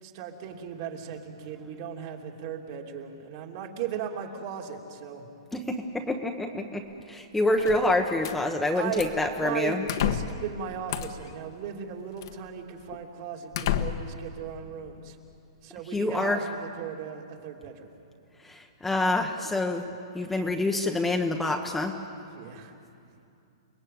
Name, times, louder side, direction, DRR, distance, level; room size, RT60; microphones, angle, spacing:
voice 1, 0.0-5.3 8.7-9.1 9.4-15.2 15.6-17.9 22.3-22.7, right 8 dB, 45° right, 2 dB, 3.2 m, -37 dB
voice 2, 5.5-9.8 15.9-16.4 18.4-19.8 20.1-22.0, left 2 dB, 5° left, 3 dB, 1.2 m, -27 dB
sound 1, 7.6-8.4 9.0-9.3 9.9-10.4 10.9-11.3 12.2-12.3 12.9-13.0 13.5-14.2, left 10 dB, 55° left, 1.4 m, -30 dB
29.5 x 20.5 x 8.7 m, 2.7 s
hypercardioid pair, 150°, 3 cm